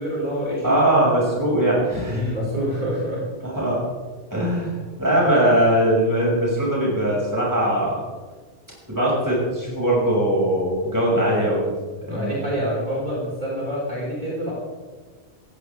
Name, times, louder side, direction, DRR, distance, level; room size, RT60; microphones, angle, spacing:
voice 1, 0.0-1.0 2.1-3.2 5.2-5.3 12.1-14.5, equal, 35° right, -8 dB, 5.9 m, -27 dB
voice 2, 0.6-2.3 3.4-3.8 4.3-8.0 8.9-11.7 12.1-12.3, right 1 dB, 15° right, -6 dB, 6.7 m, -20 dB
19.0 x 16.5 x 3.7 m, 1.3 s
omnidirectional pair, 1.3 m